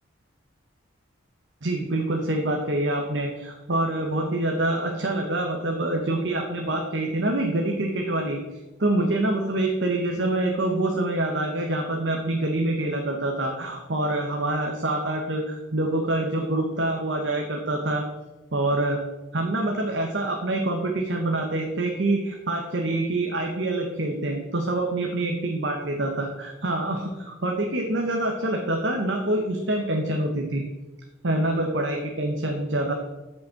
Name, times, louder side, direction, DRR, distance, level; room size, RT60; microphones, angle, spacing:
voice 1, 1.6-18.0 18.5-19.0 19.3-30.6 31.2-32.9, right 1 dB, 60° right, 2 dB, 1.0 m, -26 dB
7.1 x 5.3 x 6.9 m, 1.1 s
head